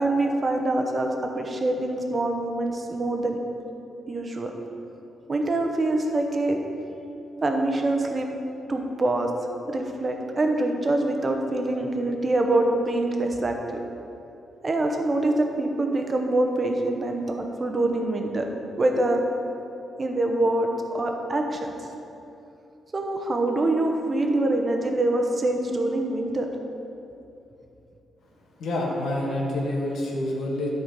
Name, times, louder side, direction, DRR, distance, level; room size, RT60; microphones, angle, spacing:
voice 1, 0.0-3.4 4.1-4.5 5.3-6.6 7.4-8.3 8.7-9.3 9.7-13.6 14.6-18.5 18.8-19.2 20.0-21.8 22.9-26.5, right 2 dB, 30° right, 3 dB, 0.9 m, -25 dB
voice 2, 28.6-30.7, left 1 dB, 80° left, -2 dB, 1.6 m, -27 dB
12.0 x 4.3 x 5.3 m, 2.8 s
cardioid pair, 125°, 0 cm